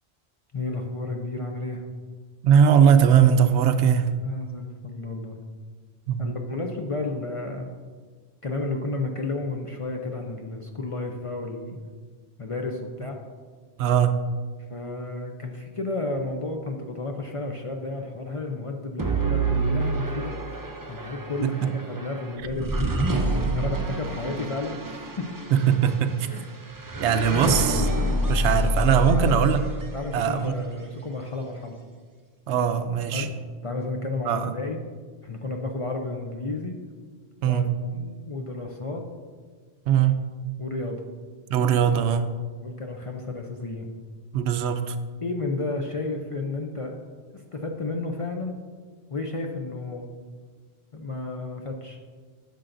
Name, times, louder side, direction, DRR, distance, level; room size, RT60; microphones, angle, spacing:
voice 1, 0.5-1.8 4.2-5.4 6.2-7.7 8.4-11.8 12.4-13.2 14.7-20.4 20.9-23.1 23.5-25.3 26.3-26.5 29.1-29.5 29.9-31.8 33.1-33.3 33.6-34.8 35.2-36.7 37.4-39.0 40.6-41.0 42.6-43.9 45.2-46.9 47.3-48.6 49.1-50.1 50.9-52.0, left 2 dB, 45° left, 2 dB, 0.5 m, -32 dB
voice 2, 2.4-4.1 6.1-6.2 13.8-14.2 21.4-21.5 25.5-26.1 27.0-27.9 28.3-29.6 30.1-30.5 32.5-33.3 34.3-34.5 37.4-37.7 39.9-40.1 41.5-42.3 44.3-45.0, right 8 dB, 85° right, 9 dB, 0.9 m, -20 dB
sound 1, 19.0-30.3, right 1 dB, 25° right, 0.4 m, -27 dB
10.0 x 6.7 x 2.6 m, 1.5 s
omnidirectional pair, 1.1 m